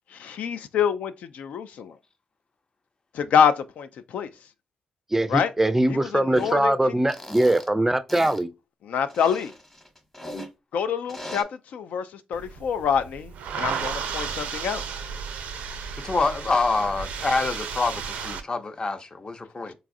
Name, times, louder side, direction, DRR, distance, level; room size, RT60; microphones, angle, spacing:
voice 1, 0.2-1.9 3.1-3.9 4.1-4.3 5.3-5.5 5.9-6.7 8.8-9.5 10.7-11.4 11.7-12.0 12.3-13.3 13.6-14.8, left 7 dB, 80° left, 0.3 m, -25 dB
voice 2, 5.1-8.5, right 1 dB, 15° right, 0.4 m, -22 dB
sound 1, 6.3-6.6 7.1-7.7 8.1-8.4 9.1-10.5 11.1-11.4, left 1 dB, 15° left, 1.0 m, -38 dB
sound 2, 12.3-18.4, right 6 dB, 85° right, 0.4 m, -33 dB
voice 3, 16.0-19.7, left 3 dB, 35° left, 0.6 m, -26 dB
3.9 x 2.3 x 2.5 m
cardioid pair, 70°, 2 cm